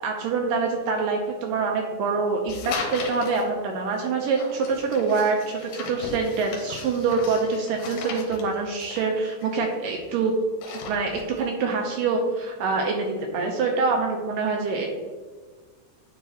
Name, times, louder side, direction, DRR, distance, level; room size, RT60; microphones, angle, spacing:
voice 1, 0.0-10.3 10.7-14.9, right 4 dB, 80° right, 1 dB, 2.0 m, -25 dB
sound 1, 2.5-3.4 4.3-10.1 10.4-11.4, left 4 dB, 75° left, 2.5 m, -37 dB
9.3 x 4.1 x 2.8 m, 1.4 s
omnidirectional pair, 4.4 m